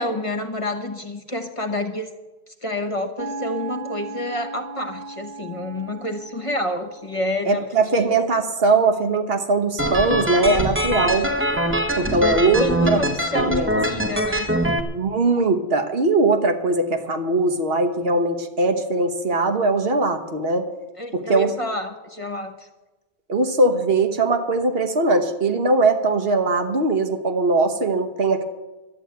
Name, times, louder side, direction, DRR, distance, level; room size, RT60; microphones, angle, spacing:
voice 1, 0.0-2.1 2.6-7.6 12.6-14.5 21.0-22.5, left 1 dB, 30° left, 6 dB, 1.0 m, -28 dB
sound 1, 3.2-7.4, right 3 dB, 45° right, 0.7 m, -36 dB
voice 2, 7.4-11.3 12.0-13.0 13.4-13.8 14.9-20.7 21.1-21.5 23.3-28.4, right 3 dB, 65° right, 7 dB, 1.3 m, -20 dB
sound 2, 9.8-14.8, equal, 15° right, 0.9 m, -23 dB
11.5 x 8.0 x 9.2 m, 1.1 s
omnidirectional pair, 1.1 m